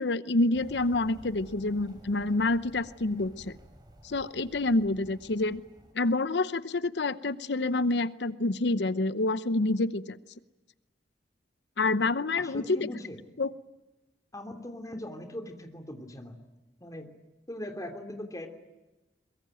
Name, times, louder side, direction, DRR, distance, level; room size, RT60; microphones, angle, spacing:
voice 1, 0.0-3.5 4.0-5.6 5.9-10.2 11.8-12.6 13.4-13.5, left 2 dB, 70° left, 15 dB, 0.8 m, -27 dB
sound 1, 0.5-5.9, equal, 25° right, 4.3 m, -53 dB
voice 2, 12.4-13.2 14.3-16.4 16.8-17.1 17.5-18.5, left 1 dB, 20° left, 5 dB, 3.0 m, -40 dB
22.5 x 22.5 x 9.0 m, 1.1 s
head